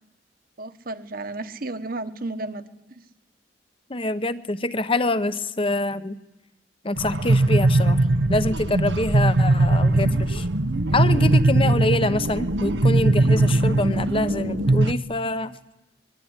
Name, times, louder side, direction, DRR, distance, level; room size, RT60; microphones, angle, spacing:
voice 1, 0.6-3.0, right 2 dB, 55° right, 10 dB, 1.5 m, -33 dB
voice 2, 3.9-6.2 6.8-10.5 10.9-15.6, left 2 dB, 30° left, 13 dB, 1.0 m, -25 dB
sound 1, 7.0-14.9, right 2 dB, 80° right, 1.0 m, -20 dB
23.5 x 22.0 x 9.8 m, 0.99 s
head